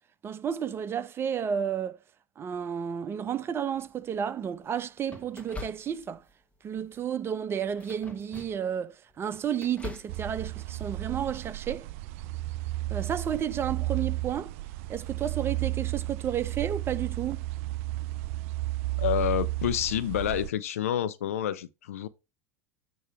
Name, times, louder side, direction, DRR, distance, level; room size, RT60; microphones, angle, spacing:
voice 1, 0.2-2.0 2.4-6.2 6.6-11.9 12.9-14.5 14.9-17.4, right 8 dB, 30° right, 0.9 m, -32 dB
sound 1, 3.7-4.2 5.1-6.3 6.7-7.0 7.7-8.7 9.1-10.2, left 4 dB, 15° left, 1.6 m, -44 dB
sound 2, 10.1-20.5, right 17 dB, 65° right, 0.4 m, -33 dB
voice 2, 19.0-22.1, left 10 dB, 80° left, 0.7 m, -28 dB
9.3 x 3.1 x 6.0 m
hypercardioid pair, 85°, 8 cm